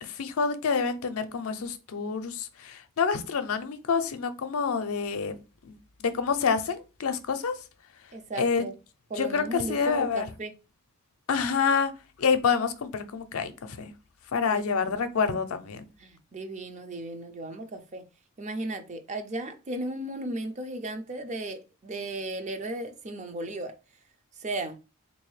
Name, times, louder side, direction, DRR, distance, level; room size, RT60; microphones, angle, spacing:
voice 1, 0.0-5.3 5.6-7.5 8.4-8.6 9.2-10.3 11.3-11.9 12.2-13.9 14.3-15.8, left 5 dB, 80° left, 0.5 m, -27 dB
voice 2, 8.1-8.8 9.1-10.5 14.4-14.9 16.0-18.0 18.4-23.7 24.4-24.8, right 2 dB, 35° right, 0.5 m, -35 dB
3.8 x 2.6 x 3.1 m
head